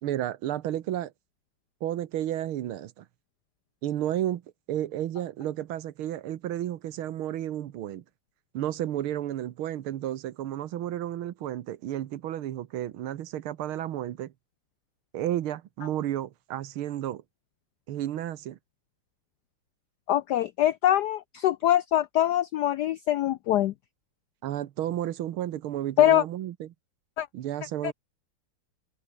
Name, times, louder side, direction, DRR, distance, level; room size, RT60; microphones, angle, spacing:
voice 1, 0.0-1.1 1.8-3.1 3.8-4.4 4.7-8.0 8.5-14.3 15.1-17.2 17.9-18.6 24.4-26.7 27.3-27.9, right 12 dB, 75° right, 1.8 m, -32 dB
voice 2, 20.1-23.7 26.0-26.2 27.2-27.3 27.8-27.9, left 12 dB, 85° left, 0.9 m, -23 dB
omnidirectional pair, 2.4 m